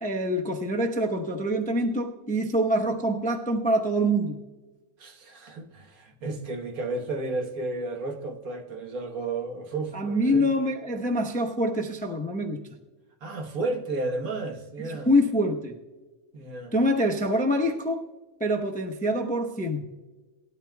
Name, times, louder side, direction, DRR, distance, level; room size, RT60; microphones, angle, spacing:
voice 1, 0.0-4.4 9.9-12.6 15.0-15.8 16.7-18.1 18.4-19.9, equal, 10° left, 0.5 m, -25 dB
voice 2, 5.0-10.5 13.2-15.1 16.3-16.7, right 3 dB, 70° right, 1.6 m, -32 dB
19.5 x 12.5 x 2.2 m
omnidirectional pair, 1.6 m